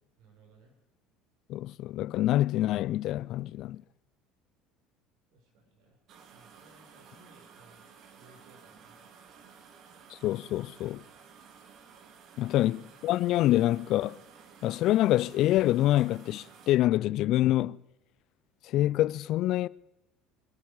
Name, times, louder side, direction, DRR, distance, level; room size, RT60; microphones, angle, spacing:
voice 1, 0.2-0.8 5.3-6.0 6.3-7.8 8.2-9.0, right 3 dB, 75° right, 4.6 m, -60 dB
voice 2, 1.5-3.8 10.1-11.0 12.4-14.2 14.6-17.8 18.6-19.7, left 14 dB, 60° left, 0.4 m, -26 dB
sound 1, 6.1-16.8, right 6 dB, 55° right, 1.7 m, -54 dB
25.0 x 8.4 x 4.8 m
supercardioid pair, 90°, 0 cm